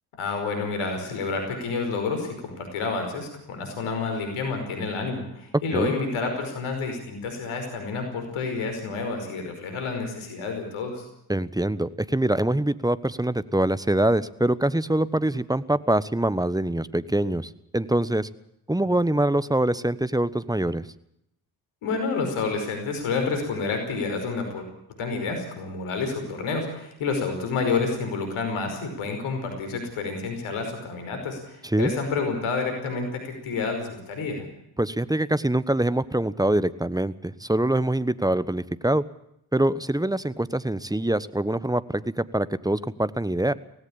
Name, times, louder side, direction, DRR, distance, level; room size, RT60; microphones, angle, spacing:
voice 1, 0.2-11.0 21.8-24.7 25.0-34.4, left 4 dB, 75° left, 5 dB, 5.3 m, -29 dB
voice 2, 11.3-18.3 18.7-20.9 31.7-31.9 34.8-39.0 39.5-43.5, right 1 dB, 10° right, 16 dB, 1.2 m, -24 dB
18.0 x 17.0 x 8.7 m, 0.78 s
hypercardioid pair, 40°, 49 cm